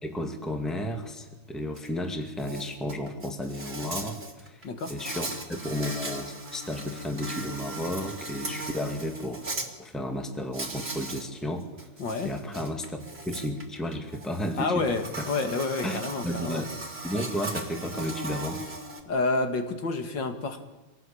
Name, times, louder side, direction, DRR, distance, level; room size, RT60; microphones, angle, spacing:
voice 1, 0.0-9.4 9.8-11.7 12.2-14.9 15.2-15.3 15.8-16.7 17.0-18.6, equal, ahead, 4 dB, 2.1 m, -33 dB
Insect, 1.8-1.9 2.2-9.7 10.5-11.3 11.6-19.0, right 2 dB, 30° right, 3.0 m, -38 dB
voice 2, 12.0-12.3 14.6-16.6 19.1-20.6, left 3 dB, 65° left, 7 dB, 2.6 m, -29 dB
25.0 x 18.0 x 8.7 m, 1.1 s
omnidirectional pair, 2.2 m